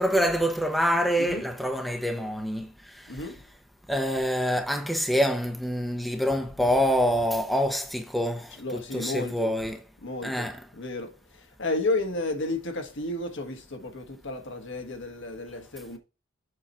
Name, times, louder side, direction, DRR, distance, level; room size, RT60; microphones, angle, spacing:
voice 1, 0.0-3.2 3.9-9.8 10.2-10.6, equal, ahead, 0.8 m, -26 dB
voice 2, 1.2-1.5 3.1-3.4 6.6-6.7 8.5-9.6 10.0-16.0, left 2 dB, 60° left, 1.5 m, -33 dB
7.6 x 4.0 x 4.3 m
head